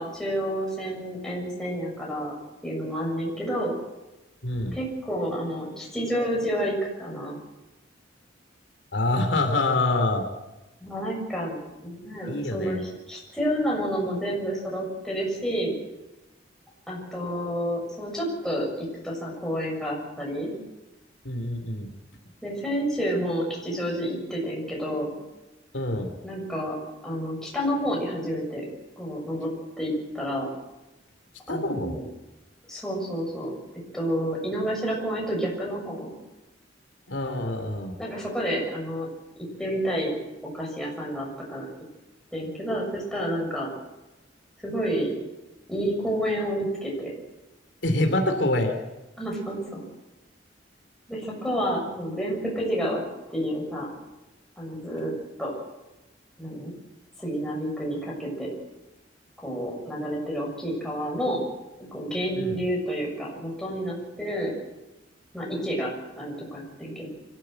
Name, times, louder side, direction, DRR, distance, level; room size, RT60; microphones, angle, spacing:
voice 1, 0.0-2.3 2.6-3.8 4.7-7.4 10.8-11.6 11.8-12.8 13.1-15.7 16.9-20.5 22.4-25.1 26.2-26.7 27.0-28.6 29.0-29.5 29.8-30.5 31.5-32.0 32.7-33.5 33.9-36.1 38.0-39.1 39.6-40.1 40.4-41.7 42.3-43.7 44.6-45.1 45.7-47.1 49.2-49.8 51.1-53.0 53.3-53.9 54.6-55.1 55.4-55.5 56.4-56.7 57.2-58.5 59.4-61.4 61.9-64.5 65.3-65.9 66.2-67.1, equal, 5° left, -3 dB, 6.8 m, -29 dB
voice 2, 4.4-4.8 8.9-10.2 12.3-12.8 21.2-21.9 25.7-26.1 31.5-32.0 37.1-38.0 47.8-48.8 62.3-62.6, left 2 dB, 70° left, 4 dB, 3.0 m, -26 dB
25.0 x 14.5 x 7.8 m, 1.0 s
head